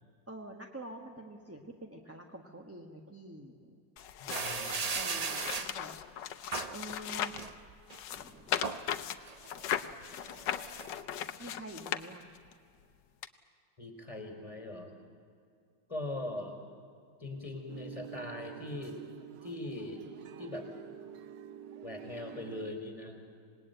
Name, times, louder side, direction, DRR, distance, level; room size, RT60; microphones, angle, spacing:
voice 1, 0.3-3.8 4.9-5.9 6.7-7.4 8.1-8.6 11.4-12.3, right 1 dB, 10° right, 2 dB, 1.1 m, -47 dB
sound 1, 4.0-7.5 7.9-12.5 13.2-13.3, left 10 dB, 75° left, 1.5 m, -38 dB
voice 2, 4.2-5.0 13.8-14.9 15.9-16.5 17.2-19.0 19.4-20.0 20.4-20.7 21.8-23.2, left 2 dB, 15° left, 3 dB, 3.9 m, -41 dB
sound 2, 4.3-5.7 6.5-6.8 7.3-8.0 8.4-8.8 9.3-11.0, right 4 dB, 40° right, 0.5 m, -37 dB
sound 3, 17.7-22.7, right 11 dB, 75° right, 1.4 m, -48 dB
26.5 x 20.0 x 9.1 m, 2.3 s
omnidirectional pair, 2.0 m